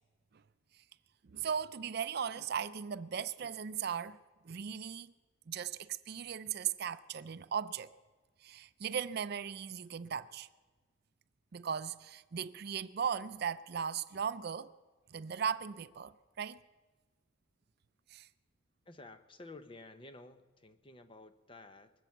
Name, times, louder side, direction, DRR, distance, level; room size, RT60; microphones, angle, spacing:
voice 1, 1.2-4.2 4.4-5.1 5.5-7.9 8.4-10.5 11.5-14.7 15.1-16.6 18.1-18.3, right 7 dB, 55° right, 0.5 m, -37 dB
voice 2, 18.8-21.9, left 2 dB, 25° left, 0.8 m, -52 dB
23.5 x 8.0 x 7.3 m
head